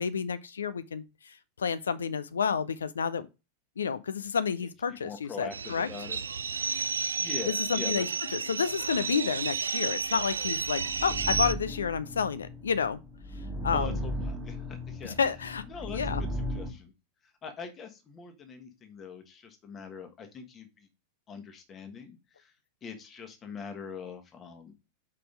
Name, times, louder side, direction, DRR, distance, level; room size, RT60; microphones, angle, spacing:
voice 1, 0.0-3.3 3.8-5.9 7.5-8.1 8.3-13.0 13.6-14.0 15.0-15.6 15.9-16.2, left 6 dB, 70° left, 0.4 m, -30 dB
voice 2, 4.9-6.2 7.2-8.0 13.7-15.2 15.7-16.9 17.2-20.9 21.3-22.5 22.8-24.7, left 6 dB, 25° left, 1.4 m, -43 dB
sound 1, 5.5-11.5, right 5 dB, 70° right, 0.4 m, -32 dB
sound 2, 10.2-16.7, equal, 20° right, 1.3 m, -36 dB
5.3 x 4.2 x 5.1 m
figure-of-eight pair, 90°, 0 cm